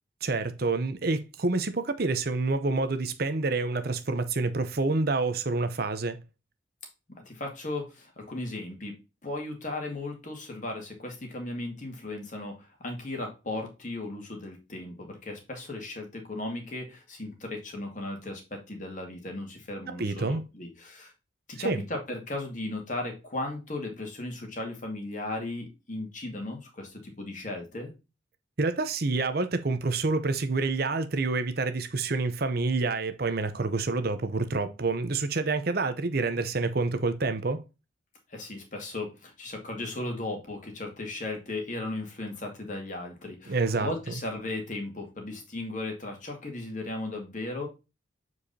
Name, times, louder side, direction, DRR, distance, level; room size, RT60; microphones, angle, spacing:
voice 1, 0.2-6.2 19.9-20.4 21.6-21.8 28.6-37.6 43.5-43.9, right 3 dB, 50° right, 0.7 m, -28 dB
voice 2, 7.3-8.9 9.2-21.1 21.5-27.9 38.3-47.7, left 2 dB, 40° left, 2.2 m, -36 dB
7.5 x 4.8 x 2.7 m
head